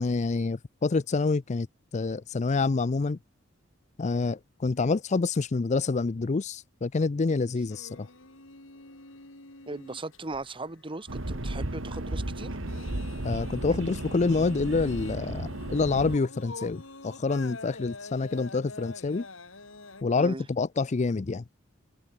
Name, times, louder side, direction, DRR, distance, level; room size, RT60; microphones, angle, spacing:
voice 1, 0.0-1.7 1.9-3.2 4.0-8.1 13.2-19.3 20.0-21.4, left 3 dB, 35° left, 0.5 m, -27 dB
sound 1, 7.7-20.0, left 3 dB, 85° left, 4.8 m, -46 dB
voice 2, 9.7-12.6 20.2-20.4, right 2 dB, 25° right, 1.5 m, -38 dB
sound 2, 11.1-16.2, right 1 dB, 80° right, 2.2 m, -34 dB
head